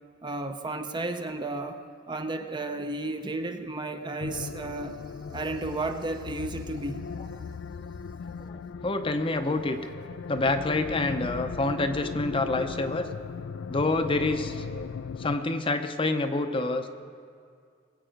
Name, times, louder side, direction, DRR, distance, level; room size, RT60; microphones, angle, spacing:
voice 1, 0.2-1.8 2.1-5.0 5.3-7.0, right 2 dB, 25° right, 7 dB, 0.6 m, -33 dB
sound 1, 4.2-15.4, left 5 dB, 75° left, 0.4 m, -38 dB
voice 2, 8.8-9.8 10.3-13.1 13.7-14.6 15.2-16.9, left 2 dB, 30° left, 7 dB, 0.6 m, -27 dB
21.5 x 8.2 x 5.1 m, 2.3 s
head